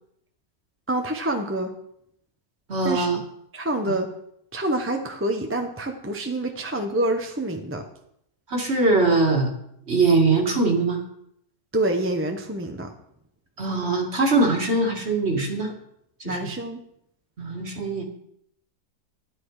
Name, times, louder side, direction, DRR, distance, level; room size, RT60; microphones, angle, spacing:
voice 1, 0.9-1.7 2.8-3.1 3.5-4.1 4.5-7.8 11.7-12.9 16.2-16.8, right 1 dB, 10° right, 4 dB, 0.8 m, -27 dB
voice 2, 2.7-3.2 3.9-4.0 8.5-9.5 9.9-11.0 13.6-15.7 16.2-16.4 17.4-18.0, right 3 dB, 40° right, 2 dB, 2.2 m, -22 dB
12.0 x 11.0 x 4.9 m, 0.74 s
omnidirectional pair, 1.8 m